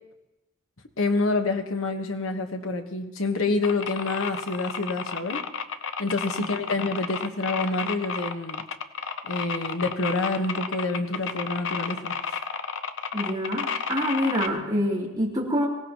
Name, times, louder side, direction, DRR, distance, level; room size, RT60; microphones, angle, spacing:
voice 1, 1.0-5.4 6.0-8.6 9.2-12.4, left 3 dB, 85° left, 6 dB, 1.3 m, -27 dB
sound 1, 3.6-14.5, left 6 dB, 65° left, 0.7 m, -31 dB
voice 2, 13.1-15.7, equal, 20° right, -6 dB, 3.7 m, -26 dB
24.0 x 17.0 x 3.1 m, 1.0 s
head